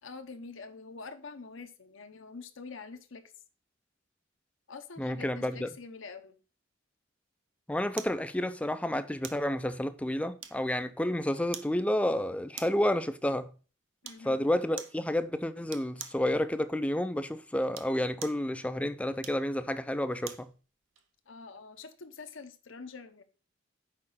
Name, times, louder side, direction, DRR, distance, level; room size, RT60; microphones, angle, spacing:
voice 1, 0.0-3.3 4.7-6.4 14.0-14.5 21.3-23.2, left 4 dB, 70° left, 0.9 m, -46 dB
voice 2, 5.0-5.7 7.7-13.5 14.2-20.5, left 1 dB, 5° left, 0.5 m, -30 dB
sound 1, 8.0-8.2 9.2-9.5 10.4-10.8 11.5-11.8 12.5-12.9 14.0-14.3 14.8-15.0 15.7-16.2 17.6-18.5 19.2-20.5 21.0-21.1, right 9 dB, 70° right, 0.8 m, -44 dB
6.7 x 4.9 x 5.5 m
head